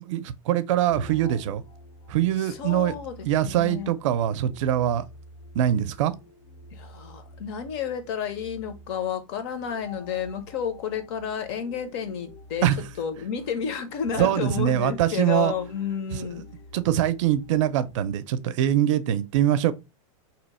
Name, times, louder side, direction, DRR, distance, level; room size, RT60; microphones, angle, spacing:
voice 1, 0.0-1.6 2.1-2.9 3.2-5.1 5.5-6.1 12.6-12.8 14.2-15.5 16.1-16.4 16.7-19.7, right 11 dB, 65° right, 0.4 m, -23 dB
sound 1, 0.8-18.1, left 1 dB, 85° left, 0.9 m, -48 dB
voice 2, 2.4-3.1 3.4-3.9 6.7-12.7 13.0-16.4, left 7 dB, 50° left, 0.7 m, -31 dB
2.8 x 2.0 x 4.0 m
supercardioid pair, 155°, 17 cm